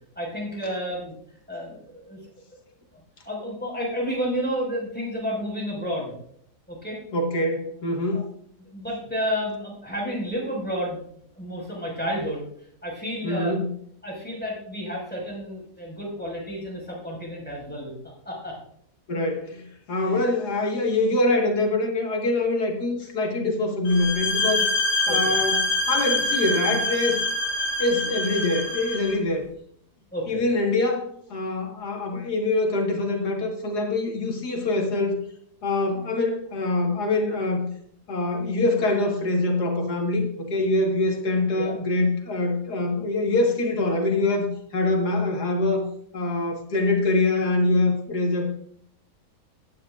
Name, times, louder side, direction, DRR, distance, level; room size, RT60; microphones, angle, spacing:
voice 1, 0.2-1.1 1.5-2.2 2.9-3.0 3.3-6.1 6.7-7.0 8.1-8.2 8.6-11.0 11.4-12.4 12.8-13.6 14.0-17.9 18.3-18.6 20.0-20.2 25.1-25.3 30.1-30.4 41.5-41.8, equal, 5° left, -4 dB, 5.3 m, -31 dB
voice 2, 7.1-8.2 13.2-13.7 19.1-24.7 25.1-27.2 27.8-29.4 30.3-35.2 35.6-37.7 38.1-45.9 46.1-48.5, left 2 dB, 75° left, 2 dB, 2.3 m, -24 dB
sound 1, 23.9-29.1, left 2 dB, 50° left, 4.6 m, -25 dB
17.0 x 10.5 x 2.5 m, 0.66 s
omnidirectional pair, 1.7 m